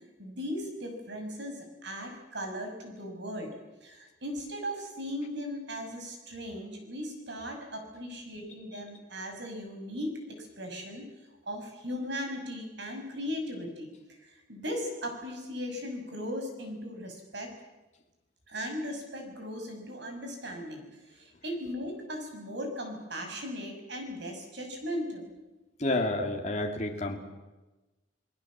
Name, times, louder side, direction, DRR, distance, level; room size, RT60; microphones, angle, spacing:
voice 1, 0.2-3.5 3.8-11.1 11.5-13.9 14.2-17.5 18.5-25.3 26.2-26.3, equal, 60° right, 4 dB, 6.1 m, -38 dB
voice 2, 25.8-27.2, left 2 dB, 35° left, 2 dB, 2.7 m, -30 dB
28.0 x 20.0 x 7.5 m, 1.1 s
head